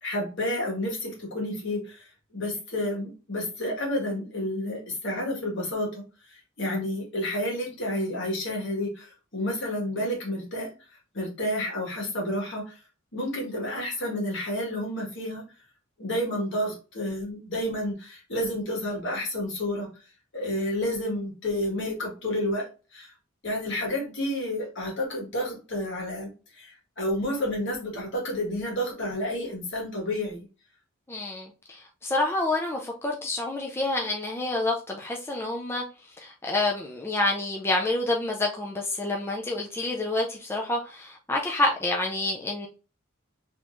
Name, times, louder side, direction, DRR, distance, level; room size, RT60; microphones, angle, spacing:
voice 1, 0.0-6.0 6.3-10.7 11.1-12.8 13.1-15.4 16.0-19.9 20.3-23.1 23.4-30.4, left 1 dB, 60° left, -1 dB, 1.6 m, -30 dB
voice 2, 31.1-42.7, left 2 dB, 10° left, 0 dB, 0.4 m, -28 dB
3.8 x 3.0 x 2.6 m, 0.33 s
head